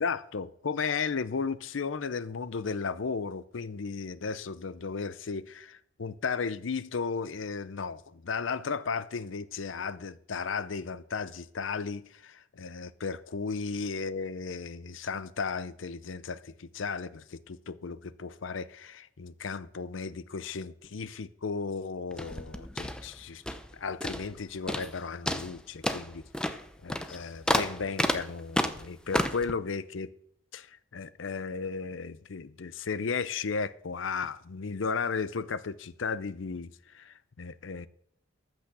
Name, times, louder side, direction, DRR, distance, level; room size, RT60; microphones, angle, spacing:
voice 1, 0.0-23.4 23.7-30.1 30.5-37.9, left 5 dB, 80° left, 0.6 m, -35 dB
sound 1, 22.1-23.7 24.0-24.4 24.7-25.0 25.3-29.5, left 1 dB, 5° left, 0.6 m, -31 dB
14.0 x 6.2 x 6.1 m
head